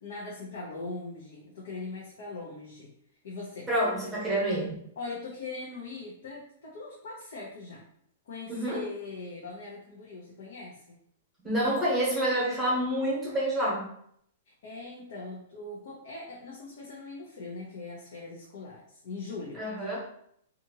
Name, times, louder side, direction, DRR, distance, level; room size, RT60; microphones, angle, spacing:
voice 1, 0.0-2.9 3.2-3.7 5.0-7.9 8.3-11.0 14.5-20.0, left 3 dB, 65° left, -4 dB, 0.7 m, -41 dB
voice 2, 3.7-4.8 8.5-8.8 11.4-13.9 19.6-20.0, right 1 dB, 10° right, -6 dB, 1.0 m, -28 dB
2.8 x 2.5 x 2.8 m, 0.68 s
hypercardioid pair, 165°, 0 cm